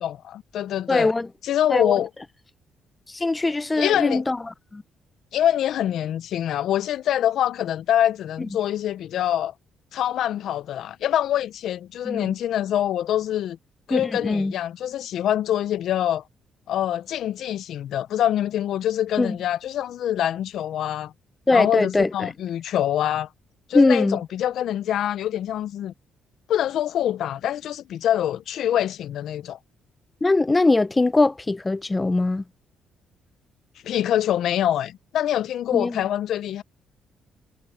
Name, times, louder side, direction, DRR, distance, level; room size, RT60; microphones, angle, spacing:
voice 1, 0.0-1.1 1.4-2.1 3.8-4.2 5.3-9.5 9.9-13.6 13.9-16.2 16.7-21.1 21.5-23.3 23.7-25.9 26.5-29.6 33.8-36.6, left 11 dB, 75° left, 0.5 m, -25 dB
voice 2, 0.9-1.3 1.7-2.0 3.1-4.8 8.4-8.5 12.0-12.4 13.9-14.5 19.2-19.4 21.5-22.3 23.7-24.2 30.2-32.4 35.7-36.0, left 2 dB, 20° left, 0.7 m, -21 dB
cardioid pair, 90°, 0 cm